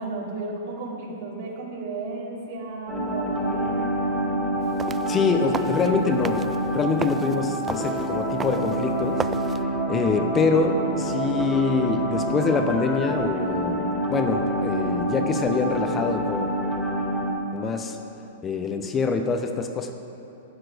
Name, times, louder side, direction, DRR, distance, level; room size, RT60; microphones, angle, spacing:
voice 1, 0.0-4.1, right 3 dB, 60° right, -3 dB, 2.8 m, -34 dB
sound 1, 2.9-17.3, right 1 dB, 5° left, 2.2 m, -27 dB
sound 2, 4.6-9.6, right 6 dB, 20° right, 0.3 m, -36 dB
voice 2, 5.1-6.4 6.7-9.3 9.9-16.5 17.5-18.0 18.4-19.9, left 4 dB, 20° left, 6 dB, 0.8 m, -25 dB
11.5 x 7.8 x 6.2 m, 3.0 s
hypercardioid pair, 115°, 0 cm